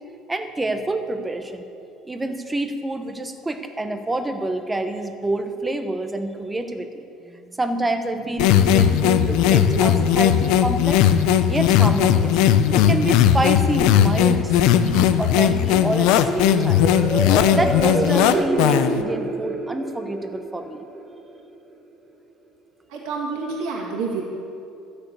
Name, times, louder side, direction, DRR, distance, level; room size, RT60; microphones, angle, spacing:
voice 1, 0.3-1.7 2.0-7.0 7.6-11.1 11.5-12.4 12.7-16.9 17.5-20.8, right 2 dB, 10° right, 7 dB, 0.8 m, -27 dB
sound 1, 7.8-21.7, right 2 dB, 25° right, 1.3 m, -30 dB
sound 2, 8.4-19.0, left 10 dB, 75° left, 0.6 m, -17 dB
voice 2, 22.9-24.2, right 4 dB, 90° right, -2 dB, 2.1 m, -28 dB
13.0 x 6.7 x 8.3 m, 2.6 s
cardioid pair, 155°, 0 cm